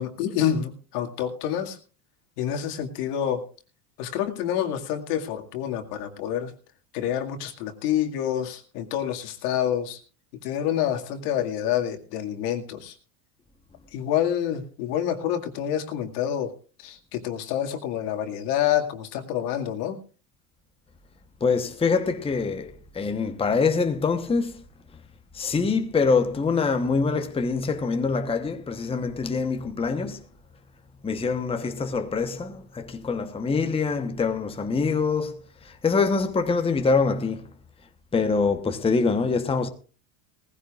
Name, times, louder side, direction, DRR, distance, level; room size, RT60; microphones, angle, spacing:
voice 1, 0.0-1.8 2.4-3.5 4.0-6.5 6.9-10.0 10.4-12.9 13.9-16.5 16.8-20.0, left 10 dB, 75° left, 2.2 m, -27 dB
voice 2, 21.4-24.6 25.3-30.2 31.0-35.4 35.8-37.5 38.1-39.7, left 4 dB, 10° left, 1.0 m, -24 dB
19.0 x 15.5 x 2.4 m
supercardioid pair, 115°, 47 cm